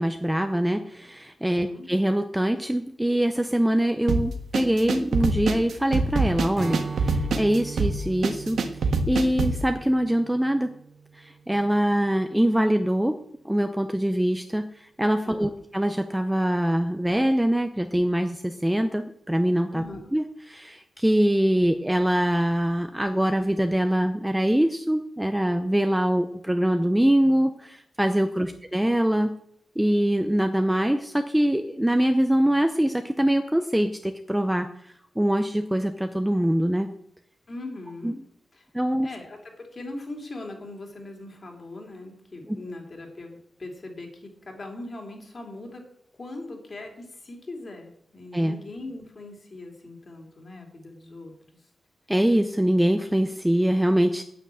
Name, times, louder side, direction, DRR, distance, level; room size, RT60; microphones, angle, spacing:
voice 1, 0.0-8.6 9.1-10.7 11.2-13.2 13.4-14.7 15.0-19.8 20.1-29.3 29.8-34.7 35.2-36.9 38.0-38.1 38.7-39.1 42.5-42.6 48.3-48.6 52.1-54.2, right 1 dB, 5° right, 7 dB, 0.6 m, -23 dB
voice 2, 1.5-1.9 15.2-15.6 19.7-20.1 28.4-28.6 37.5-38.2 38.5-38.7 39.0-45.9 46.2-51.6, left 2 dB, 35° left, 2 dB, 2.9 m, -40 dB
sound 1, 4.1-9.6, right 3 dB, 90° right, 1.4 m, -25 dB
Strum, 6.5-12.0, right 5 dB, 40° right, 1.0 m, -39 dB
9.4 x 8.8 x 8.3 m, 0.70 s
wide cardioid pair, 180°, 0 cm